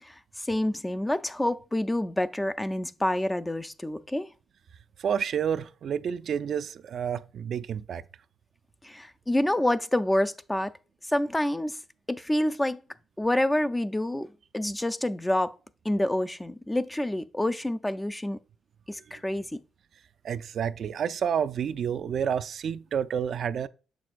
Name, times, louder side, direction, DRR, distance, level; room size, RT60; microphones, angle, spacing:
voice 1, 0.0-4.3 8.8-10.7 11.1-11.8 12.1-12.8 13.2-15.6 15.8-18.4 18.9-19.6, left 1 dB, 10° left, 0.4 m, -28 dB
voice 2, 5.0-8.0 19.1-19.2 20.2-23.7, right 8 dB, 60° right, 0.3 m, -29 dB
6.9 x 6.1 x 2.4 m
cardioid pair, 90°, 0 cm